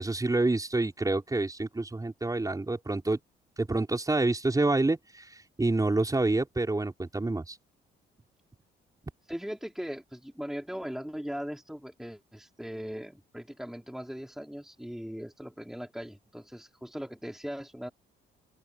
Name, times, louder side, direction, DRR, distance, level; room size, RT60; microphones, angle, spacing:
voice 1, 0.0-3.2 3.6-7.6, right 2 dB, 15° right, 5.4 m, -28 dB
voice 2, 9.3-17.9, equal, ahead, 3.8 m, -39 dB
open air
cardioid pair, 90°, 20 cm